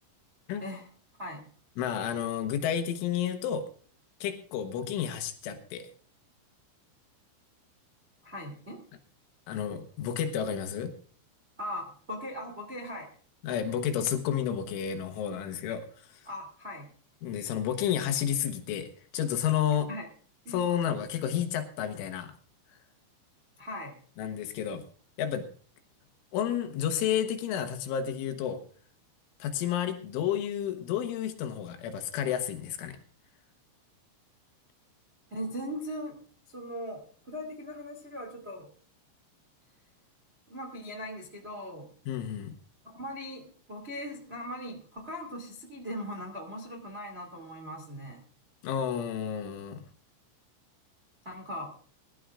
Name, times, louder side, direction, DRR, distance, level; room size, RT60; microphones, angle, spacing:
voice 1, 1.8-3.7 4.2-5.9 9.5-10.9 13.4-16.1 17.2-18.9 19.1-19.9 20.5-22.3 24.2-24.8 25.2-25.5 26.3-28.6 29.4-33.0 42.1-42.5 48.6-49.8, left 9 dB, 75° left, 6 dB, 3.5 m, -31 dB
voice 2, 8.2-8.8 11.6-13.1 16.2-16.9 19.9-20.1 20.4-20.6 23.6-24.0 35.3-36.2 36.5-38.7 40.5-41.9 42.8-48.2 51.2-51.7, equal, 40° right, 1 dB, 0.8 m, -39 dB
22.5 x 12.5 x 2.5 m, 0.44 s
omnidirectional pair, 5.9 m